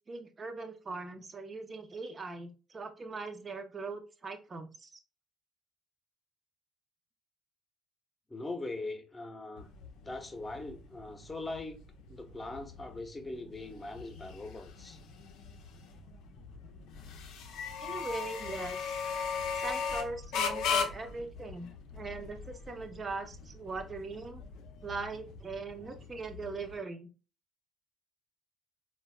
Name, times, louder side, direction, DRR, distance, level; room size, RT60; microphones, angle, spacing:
voice 1, 0.1-5.0 17.8-19.0 19.5-24.4 24.8-27.1, right 3 dB, 35° right, 0.6 m, -41 dB
voice 2, 8.3-9.7 10.0-11.8 12.1-15.0, left 2 dB, 25° left, 0.8 m, -41 dB
sound 1, 9.6-26.8, left 6 dB, 70° left, 0.5 m, -38 dB
3.9 x 2.2 x 2.2 m
hypercardioid pair, 55°, 0 cm